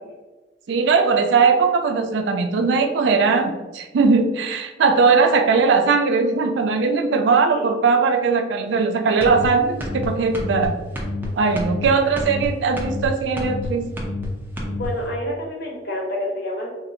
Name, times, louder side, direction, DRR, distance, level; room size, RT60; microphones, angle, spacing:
voice 1, 0.7-10.8 11.4-13.9, right 4 dB, 75° right, 6 dB, 0.4 m, -19 dB
sound 1, 9.2-9.5 9.8-10.1 10.3-10.7 10.9-11.3 11.5-11.9 12.2-12.5 12.8-13.1 13.4-13.7 14.0-14.3 14.6-14.9, left 1 dB, 10° right, 0.5 m, -28 dB
voice 2, 14.7-16.7, left 1 dB, 55° left, -1 dB, 0.8 m, -28 dB
3.2 x 2.6 x 2.7 m, 1.2 s
head